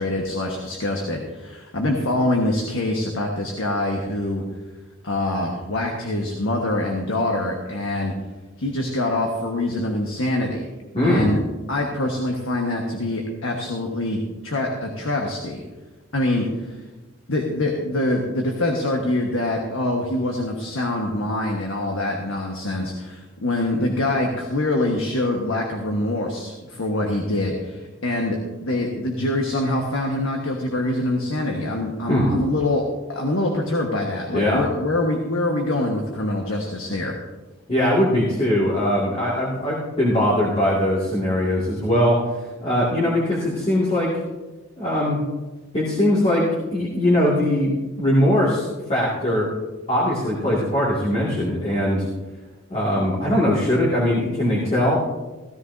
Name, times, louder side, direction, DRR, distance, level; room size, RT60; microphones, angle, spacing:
voice 1, 0.0-4.4 5.0-8.1 8.6-10.6 11.0-11.4 11.7-15.6 16.1-16.8 17.3-32.8 33.1-37.1, left 1 dB, 80° left, 1 dB, 1.4 m, -24 dB
voice 2, 10.9-11.3 32.1-32.3 34.3-34.6 37.7-42.2 42.6-44.1 44.8-45.2 45.7-49.5 49.9-52.1 52.7-55.0, left 1 dB, 30° left, -6 dB, 2.1 m, -21 dB
16.0 x 13.0 x 2.7 m, 1.2 s
head